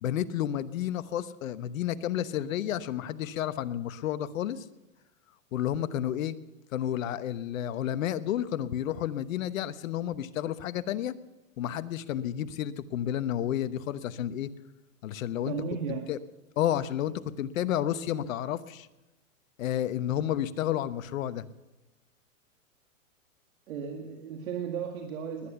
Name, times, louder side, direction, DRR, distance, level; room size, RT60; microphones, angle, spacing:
voice 1, 0.0-4.6 5.5-6.3 6.7-11.1 11.6-14.5 15.0-15.5 16.1-16.2 16.6-18.9 19.6-21.4, left 11 dB, 65° left, 13 dB, 1.1 m, -31 dB
voice 2, 15.4-16.1 23.7-25.5, right 7 dB, 70° right, 3 dB, 2.2 m, -35 dB
20.5 x 10.0 x 6.9 m, 1.1 s
hypercardioid pair, 135°, 42 cm